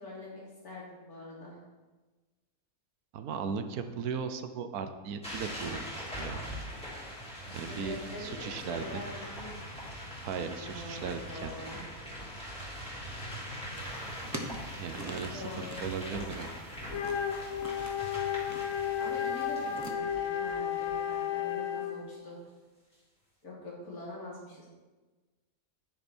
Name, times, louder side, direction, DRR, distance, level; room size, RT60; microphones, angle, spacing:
voice 1, 0.0-1.6 7.5-9.5 10.6-11.8 15.3-15.8 18.7-22.4 23.4-24.7, left 1 dB, 90° left, -5 dB, 3.6 m, -44 dB
voice 2, 3.1-5.8 6.2-6.4 7.5-9.0 10.2-11.5 14.8-16.5, right 6 dB, 85° right, 8 dB, 1.3 m, -37 dB
sound 1, 5.2-21.2, equal, 5° left, 3.1 m, -42 dB
sound 2, 13.7-19.9, right 1 dB, 15° right, 0.8 m, -46 dB
Wind instrument woodwind instrument, 16.9-22.1, left 8 dB, 65° left, 1.1 m, -33 dB
10.0 x 9.5 x 4.4 m, 1.3 s
omnidirectional pair, 1.5 m